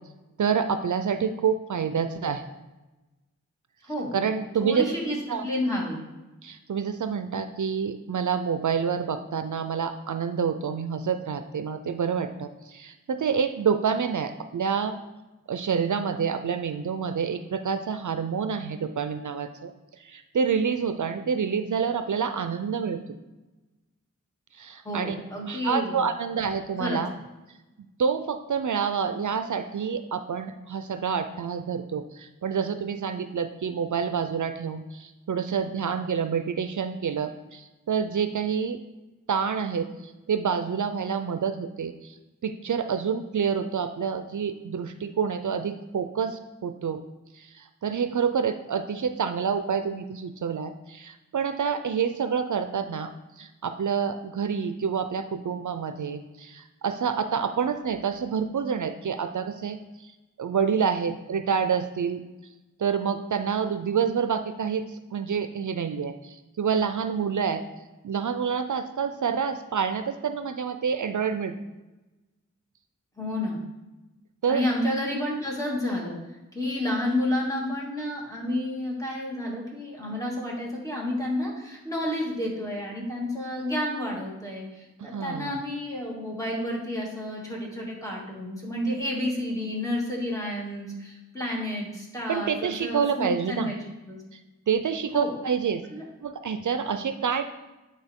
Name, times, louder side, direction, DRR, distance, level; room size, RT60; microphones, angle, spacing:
voice 1, 0.4-2.4 4.1-4.8 5.3-5.5 6.4-15.0 15.5-19.7 20.0-23.0 24.5-25.1 25.5-27.1 28.0-38.8 39.3-42.2 42.4-47.0 47.3-53.1 53.4-60.1 60.4-62.2 62.8-67.6 68.0-71.5 74.4-74.6 85.0-85.6 92.3-93.7 94.3-94.4 94.7-95.8 96.2-97.4, right 6 dB, 70° right, 9 dB, 0.5 m, -28 dB
voice 2, 3.8-4.1 4.6-5.2 5.4-6.0 24.8-26.0 26.8-27.0 73.2-73.6 74.5-76.2 76.5-93.8 94.1-94.2 95.1-95.3 95.9-96.0, left 1 dB, 10° left, -4 dB, 2.4 m, -30 dB
10.0 x 4.1 x 3.6 m, 1.1 s
wide cardioid pair, 40°, 31 cm